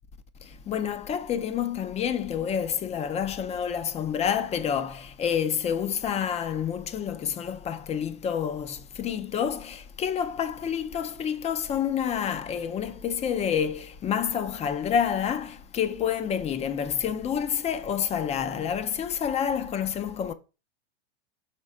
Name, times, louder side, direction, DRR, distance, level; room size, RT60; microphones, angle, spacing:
voice 1, 0.7-20.3, left 8 dB, 20° left, 0.6 m, -28 dB
5.9 x 3.9 x 4.8 m
hypercardioid pair, 100°, 34 cm